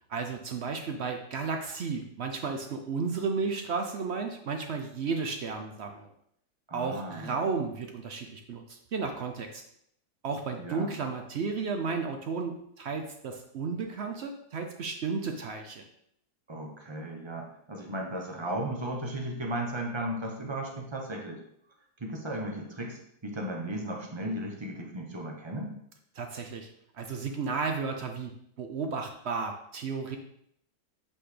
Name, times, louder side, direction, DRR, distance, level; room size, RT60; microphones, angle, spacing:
voice 1, 0.1-6.1 6.7-8.6 8.9-9.6 10.2-15.8 26.2-26.7 27.0-28.3 28.6-30.2, right 4 dB, 65° right, 4 dB, 0.7 m, -33 dB
voice 2, 6.7-7.4 10.6-10.9 16.5-21.4 22.0-25.8, right 1 dB, 25° right, 1 dB, 0.7 m, -35 dB
7.7 x 4.3 x 3.3 m, 0.71 s
omnidirectional pair, 1.7 m